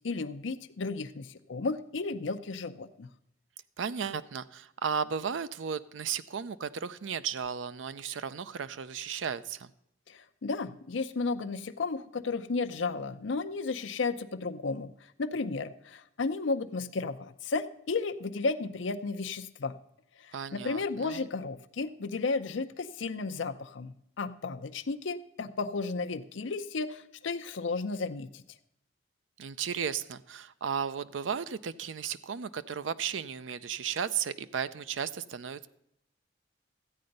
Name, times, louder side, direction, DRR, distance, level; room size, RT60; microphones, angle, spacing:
voice 1, 0.0-3.1 10.1-14.9 15.2-19.7 20.2-28.4, left 4 dB, 75° left, 10 dB, 0.6 m, -33 dB
voice 2, 3.8-9.7 20.3-21.3 29.4-35.7, right 7 dB, 90° right, 14 dB, 0.5 m, -35 dB
13.0 x 8.7 x 5.3 m, 0.77 s
head